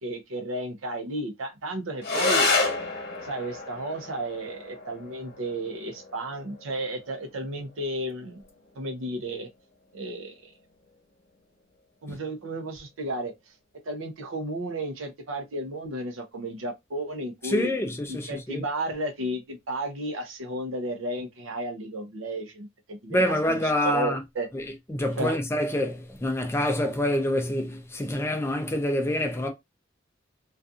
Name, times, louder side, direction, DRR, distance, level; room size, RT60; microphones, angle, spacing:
voice 1, 0.0-2.5 3.2-8.4 8.8-9.5 9.9-10.3 12.0-13.3 13.9-17.7 18.1-23.2 23.5-24.5 25.2-25.4, right 1 dB, 85° right, 0.6 m, -33 dB
sound 1, 2.0-11.0, left 3 dB, 55° left, 0.9 m, -31 dB
voice 2, 17.4-18.6 23.1-24.2 24.5-29.5, left 1 dB, 15° left, 0.4 m, -27 dB
2.6 x 2.4 x 2.3 m
head